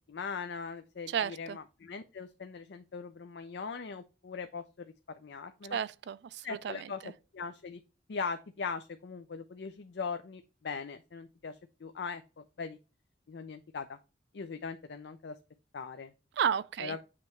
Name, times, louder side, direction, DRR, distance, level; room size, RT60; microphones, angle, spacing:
voice 1, 0.1-5.8 6.4-7.8 8.1-12.8 13.3-14.0 14.3-15.4 15.7-16.1 16.8-17.0, left 5 dB, 70° left, 0.5 m, -40 dB
voice 2, 1.1-1.6 5.7-7.1 16.4-17.0, right 8 dB, 70° right, 0.4 m, -33 dB
7.6 x 3.1 x 4.4 m
head